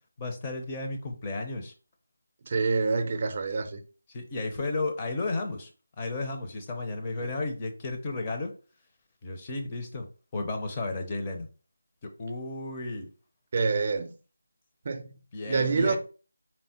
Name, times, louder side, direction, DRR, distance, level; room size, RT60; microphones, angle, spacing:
voice 1, 0.2-1.7 4.1-5.7 6.0-8.5 9.2-10.1 10.3-11.5 12.0-13.1 15.3-16.0, left 2 dB, 20° left, 0.6 m, -33 dB
voice 2, 2.5-3.8 13.5-14.1 14.8-15.1 15.5-16.0, right 4 dB, 35° right, 0.6 m, -26 dB
4.3 x 2.0 x 4.1 m
figure-of-eight pair, 170°, 0 cm